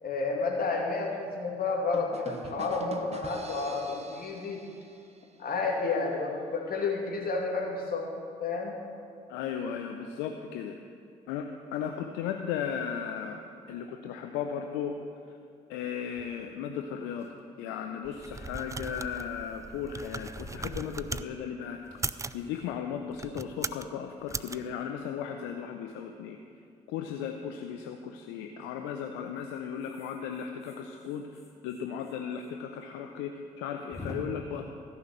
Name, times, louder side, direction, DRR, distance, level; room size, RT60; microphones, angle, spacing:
voice 1, 0.0-4.6 5.4-8.1 8.4-8.8, left 4 dB, 50° left, -1 dB, 2.8 m, -31 dB
sound 1, 1.9-5.7, right 4 dB, 35° right, 1.2 m, -45 dB
voice 2, 9.3-10.7 11.3-13.4 13.7-15.0 15.3-15.4 15.7-17.3 17.6-21.8 22.3-26.4 26.9-34.7, left 8 dB, 75° left, 4 dB, 0.7 m, -36 dB
sound 2, 16.2-16.3 16.7-16.8 17.0-17.4 18.3-18.5 18.9-19.1 19.4-19.5 20.4-21.3 21.8-24.1 24.6-25.4 27.0-27.3 28.6-28.9 29.7-32.5 32.8-32.9 33.2-33.3 33.9-34.2, left 3 dB, 15° left, 2.9 m, -50 dB
sound 3, 18.0-21.3 21.9-22.4 23.1-23.9 24.3-24.6, right 3 dB, 15° right, 0.4 m, -38 dB
15.0 x 5.9 x 7.9 m, 2.4 s
hypercardioid pair, 45°, 19 cm